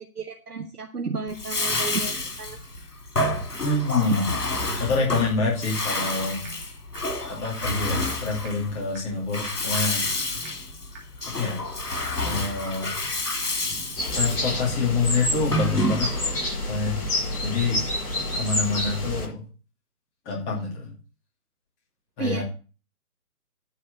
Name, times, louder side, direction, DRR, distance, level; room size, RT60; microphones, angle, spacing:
voice 1, 0.0-2.6 3.3-3.4 22.2-22.4, right 4 dB, 85° right, 3 dB, 1.5 m, -32 dB
Bathtub (filling or washing), 1.3-16.4, left 1 dB, 85° left, 3.4 m, -29 dB
voice 2, 3.6-4.3 4.8-6.6 7.3-10.0 11.3-11.6 12.2-12.9 14.1-16.1 16.7-17.0 17.4-17.8 18.3-19.5 20.2-20.9 22.2-22.4, left 4 dB, 20° left, -2 dB, 2.7 m, -26 dB
sound 1, 5.5-5.6 5.9-6.0 6.5-6.6 7.0-7.1 7.5-7.6 8.0-8.1 8.4-8.5 9.0-9.1 9.5-9.6 10.0-10.1 10.4-10.5 11.0-11.1 11.5-11.6 12.0-12.1, right 4 dB, 5° right, 0.7 m, -42 dB
sound 2, 14.0-19.3, left 1 dB, 40° left, 6.1 m, -28 dB
9.8 x 5.0 x 7.9 m, 0.36 s
figure-of-eight pair, 145°, 45 cm